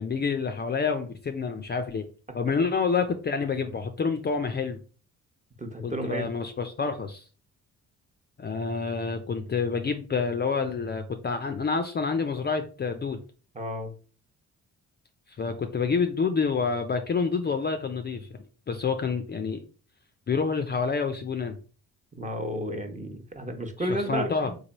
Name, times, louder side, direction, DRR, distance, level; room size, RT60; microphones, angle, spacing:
voice 1, 0.0-2.1 2.3-4.8 5.8-7.2 8.4-13.2 15.4-18.3 18.7-19.6 20.3-21.6 23.8-24.5, left 5 dB, 30° left, 6 dB, 0.5 m, -28 dB
voice 2, 5.6-6.3 13.5-13.9 22.2-24.6, right 1 dB, 20° right, 5 dB, 0.8 m, -32 dB
3.2 x 2.2 x 4.1 m, 0.37 s
supercardioid pair, 55°, 35 cm